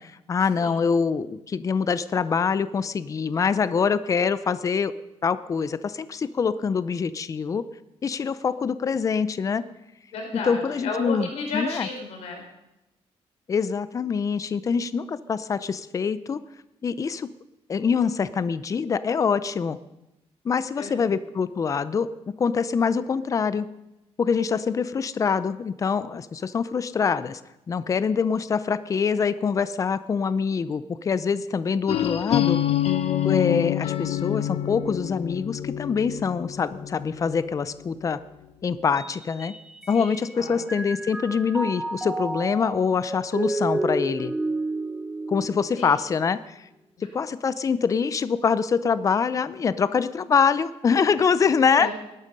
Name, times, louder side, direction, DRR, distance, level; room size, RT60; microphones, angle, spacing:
voice 1, 0.0-4.9 5.2-7.6 8.0-9.6 10.4-11.9 13.5-16.4 16.8-17.3 17.7-19.8 20.4-22.1 22.4-23.7 24.2-27.4 27.7-32.6 33.2-38.2 38.6-39.5 39.9-44.3 45.3-46.7 47.1-51.9, left 6 dB, 30° left, 15 dB, 0.6 m, -24 dB
voice 2, 10.1-12.4 20.8-21.1 39.9-40.0 40.3-40.6 45.8-45.9 51.8-51.9, left 3 dB, 80° left, 1 dB, 5.1 m, -32 dB
sound 1, 31.9-37.6, left 12 dB, 65° left, 1.0 m, -26 dB
Mallet percussion, 39.0-40.3 40.7-46.1, right 2 dB, 5° right, 0.9 m, -31 dB
19.5 x 12.0 x 5.3 m, 0.93 s
cardioid pair, 150°, 11 cm